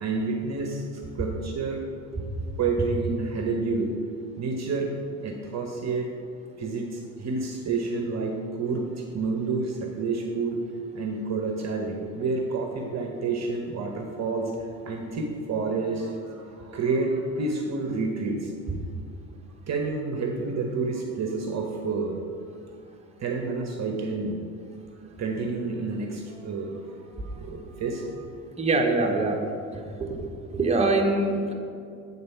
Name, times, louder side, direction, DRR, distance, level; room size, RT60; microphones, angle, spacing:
voice 1, 0.0-1.8 2.6-3.9 4.4-4.9 5.2-6.1 6.6-10.6 10.9-18.5 19.7-22.2 23.2-24.5 25.2-26.8 27.1-28.3, right 3 dB, 40° right, 3 dB, 1.0 m, -29 dB
voice 2, 28.6-29.4 30.0-31.5, right 2 dB, 15° right, 1 dB, 1.2 m, -24 dB
8.6 x 4.1 x 5.7 m, 2.4 s
hypercardioid pair, 70°, 40 cm